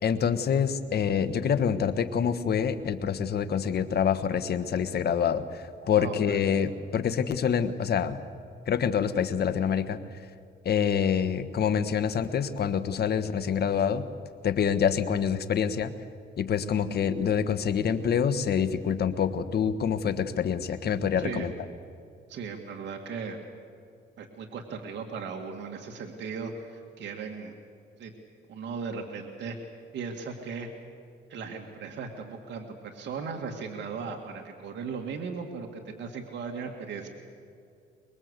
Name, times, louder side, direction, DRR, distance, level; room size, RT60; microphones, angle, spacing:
voice 1, 0.0-8.2 8.7-10.0 10.6-14.1 14.4-15.9 16.4-21.5, left 7 dB, 55° left, 10 dB, 1.4 m, -26 dB
voice 2, 5.9-6.4 21.2-21.5 22.3-23.4 24.2-27.5 28.0-28.1 28.5-29.6 29.9-30.7 31.3-37.1, right 5 dB, 70° right, 2 dB, 2.2 m, -37 dB
24.5 x 22.0 x 8.2 m, 2.4 s
cardioid pair, 110°, 19 cm